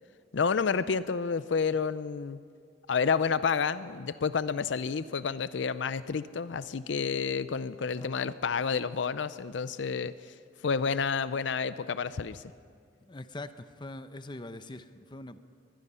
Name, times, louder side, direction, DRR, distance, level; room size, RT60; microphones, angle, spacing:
voice 1, 0.3-2.4 2.9-10.3 10.6-12.4, left 5 dB, 70° left, 15 dB, 0.5 m, -30 dB
voice 2, 7.9-8.3 13.0-15.4, left 2 dB, 25° left, 11 dB, 0.7 m, -43 dB
23.0 x 20.5 x 5.6 m, 2.2 s
head